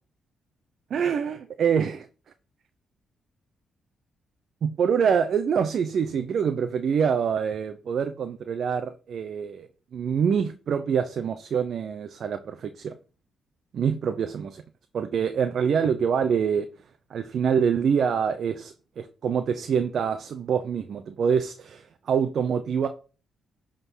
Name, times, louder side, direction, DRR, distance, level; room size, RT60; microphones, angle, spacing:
voice 1, 0.9-2.1 4.6-12.9 13.7-14.6 14.9-16.7 17.1-22.9, right 7 dB, 60° right, 0.7 m, -25 dB
11.0 x 3.9 x 6.1 m
cardioid pair, 110°, 0 cm